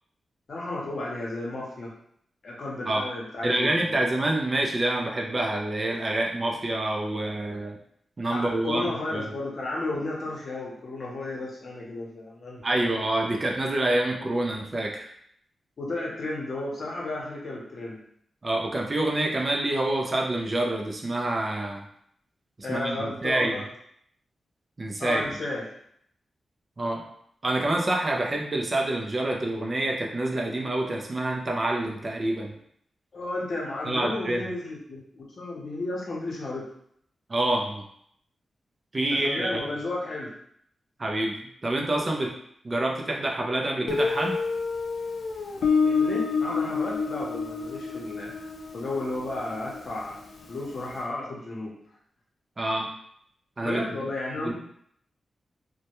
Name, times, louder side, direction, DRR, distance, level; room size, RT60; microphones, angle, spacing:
voice 1, 0.5-1.9 2.4-4.1 8.3-12.6 15.8-18.0 22.6-23.7 25.0-25.6 33.1-36.7 39.1-40.3 45.8-48.3 48.7-50.2 50.5-51.7 53.6-54.5, left 2 dB, 55° left, -4 dB, 0.7 m, -33 dB
voice 2, 3.4-7.8 8.2-8.8 9.1-9.3 12.6-15.1 18.4-21.8 22.7-23.6 24.8-25.3 26.8-27.0 27.4-32.6 33.9-34.5 37.3-37.8 38.9-39.6 41.0-42.3 42.6-44.4 52.6-52.9 53.6-53.8 54.4-54.5, right 1 dB, 30° right, 0 dB, 0.3 m, -27 dB
Guitar, 43.9-50.5, left 5 dB, 85° left, 0.3 m, -28 dB
2.1 x 2.1 x 2.9 m, 0.68 s
wide cardioid pair, 120°, 0 cm